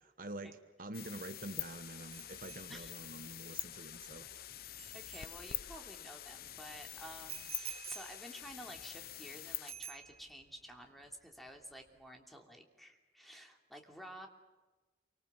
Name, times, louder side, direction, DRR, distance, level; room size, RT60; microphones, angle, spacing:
voice 1, 0.2-4.3, right 2 dB, 50° right, 9 dB, 1.3 m, -46 dB
sound 1, 0.9-9.7, left 13 dB, 55° left, 0.8 m, -46 dB
sound 2, 1.0-12.1, equal, 15° right, 4.6 m, -70 dB
Bicycle bell, 2.1-5.9 7.3-9.3 9.7-10.5 10.8-11.1, right 10 dB, 35° right, 0.9 m, -51 dB
voice 2, 4.9-14.3, equal, ahead, 2 dB, 3.0 m, -51 dB
28.5 x 25.0 x 7.4 m, 1.2 s
head